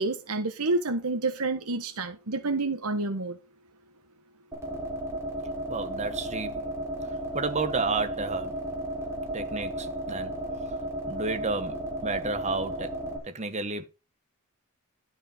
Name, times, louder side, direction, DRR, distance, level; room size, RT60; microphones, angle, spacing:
voice 1, 0.0-3.4, right 3 dB, 90° right, 1.4 m, -29 dB
sound 1, 4.5-13.2, right 1 dB, 10° right, 3.3 m, -34 dB
voice 2, 5.7-6.7 7.3-8.6 9.3-13.0 13.2-13.9, right 3 dB, 30° right, 1.3 m, -32 dB
12.5 x 5.2 x 5.1 m
head